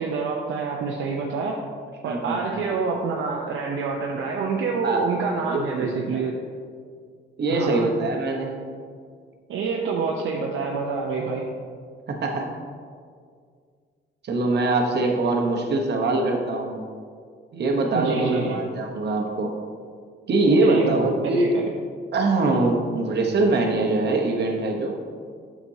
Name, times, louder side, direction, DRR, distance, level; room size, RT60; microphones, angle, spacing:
voice 1, 0.0-1.6 2.0-6.3 7.5-7.8 9.5-11.5 17.9-18.6 20.5-21.6, right 4 dB, 70° right, -1 dB, 0.6 m, -27 dB
voice 2, 2.0-2.4 4.8-6.2 7.4-8.6 12.1-12.5 14.2-16.8 17.5-19.5 20.3-21.5 22.1-24.9, right 2 dB, 55° right, 1 dB, 1.0 m, -23 dB
6.9 x 6.0 x 2.8 m, 2.1 s
cardioid pair, 85°, 21 cm